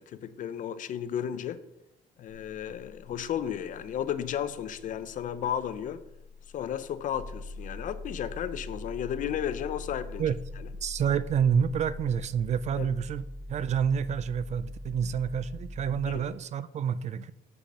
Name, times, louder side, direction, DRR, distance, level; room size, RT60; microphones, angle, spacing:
voice 1, 0.0-1.6 2.2-6.0 6.5-10.7 12.8-12.9 16.1-16.3, left 9 dB, 50° left, 0.6 m, -34 dB
sound 1, 2.3-16.1, left 2 dB, 10° right, 1.4 m, -43 dB
voice 2, 10.8-13.2 13.5-17.3, right 7 dB, 40° right, 0.4 m, -28 dB
6.2 x 4.9 x 6.6 m
cardioid pair, 110°, 17 cm